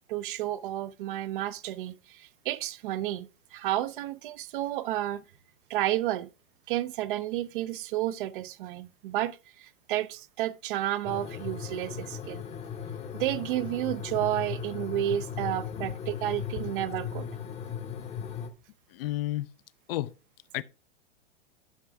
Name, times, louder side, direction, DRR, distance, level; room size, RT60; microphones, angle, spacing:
voice 1, 0.1-5.2 5.7-6.3 6.7-12.4 13.1-17.3, right 13 dB, 45° right, 0.6 m, -31 dB
sound 1, 11.1-18.5, left 8 dB, 15° left, 0.8 m, -37 dB
voice 2, 18.9-19.5 19.9-20.1 20.5-20.6, left 15 dB, 50° left, 0.6 m, -31 dB
11.0 x 6.0 x 3.4 m
hypercardioid pair, 115°, 37 cm